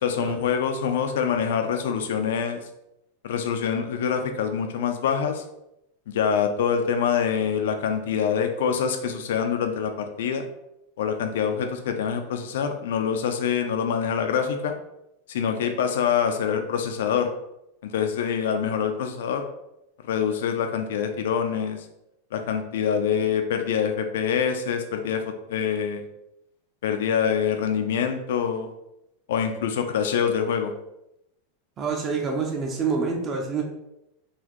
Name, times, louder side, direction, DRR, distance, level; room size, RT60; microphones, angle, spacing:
voice 1, 0.0-2.6 3.2-5.4 6.1-10.4 11.0-14.7 15.3-17.3 17.8-19.4 20.0-21.9 22.3-26.0 26.8-28.7 29.3-30.7, left 7 dB, 75° left, 6 dB, 0.4 m, -25 dB
voice 2, 31.8-33.6, right 5 dB, 20° right, 1 dB, 0.4 m, -27 dB
4.0 x 2.6 x 3.0 m, 0.86 s
supercardioid pair, 175°, 0 cm